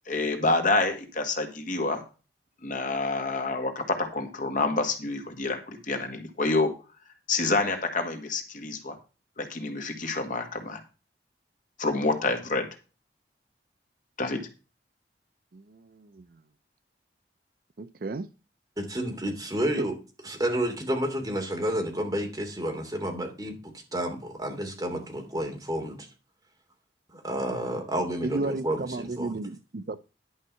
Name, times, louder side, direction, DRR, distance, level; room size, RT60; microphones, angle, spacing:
voice 1, 0.1-2.0 2.6-6.7 7.3-9.0 9.4-10.8 11.8-12.7 14.2-14.5, left 3 dB, 45° left, 1.8 m, -28 dB
voice 2, 15.5-16.3 17.8-18.3 19.8-19.9 28.2-30.0, right 2 dB, 55° right, 0.5 m, -33 dB
voice 3, 18.8-19.9 20.2-26.1 27.1-29.3, right 1 dB, 20° right, 2.9 m, -30 dB
11.0 x 5.4 x 5.7 m
head